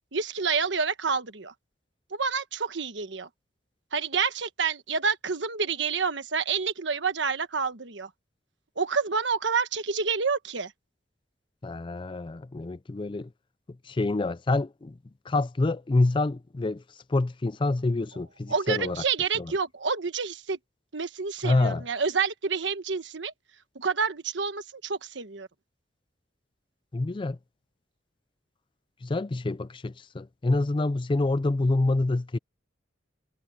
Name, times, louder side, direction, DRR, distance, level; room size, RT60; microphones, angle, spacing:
voice 1, 0.0-1.5 2.1-3.3 3.9-8.1 8.8-10.7 18.5-20.6 20.9-23.3 23.7-25.5, right 5 dB, 70° right, 1.3 m, -28 dB
voice 2, 11.6-13.3 13.9-14.9 15.3-16.8 17.1-19.0 19.4-19.5 21.4-21.8 26.9-27.4 29.0-32.4, left 2 dB, 25° left, 0.4 m, -27 dB
head